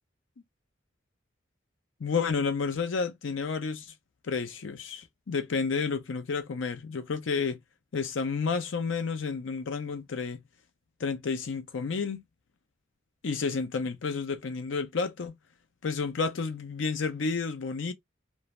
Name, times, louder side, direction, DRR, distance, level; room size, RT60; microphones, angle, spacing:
voice 1, 2.0-3.9 4.2-7.6 7.9-10.4 11.0-12.2 13.2-15.3 15.8-17.9, left 5 dB, 80° left, 0.5 m, -31 dB
2.5 x 2.0 x 3.0 m
head